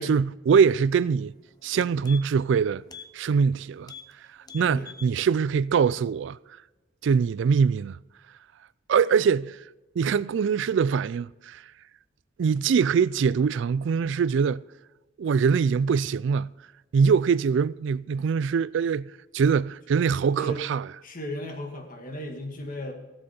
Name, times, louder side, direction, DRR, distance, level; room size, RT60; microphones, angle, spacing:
voice 1, 0.0-1.3 1.6-2.8 3.1-3.9 4.5-6.4 7.0-8.0 8.9-9.6 10.0-11.6 12.4-14.6 15.2-16.5 16.9-19.1 19.3-20.9, right 6 dB, 65° right, 0.3 m, -23 dB
sound 1, 1.2-1.3 1.6-2.5 2.9-3.1 3.4-3.5 3.8-4.1 4.4-5.1 5.5-5.6, left 6 dB, 20° left, 0.7 m, -45 dB
voice 2, 20.3-20.7 21.0-22.9, equal, 45° left, 1.9 m, -35 dB
16.5 x 7.7 x 4.3 m
head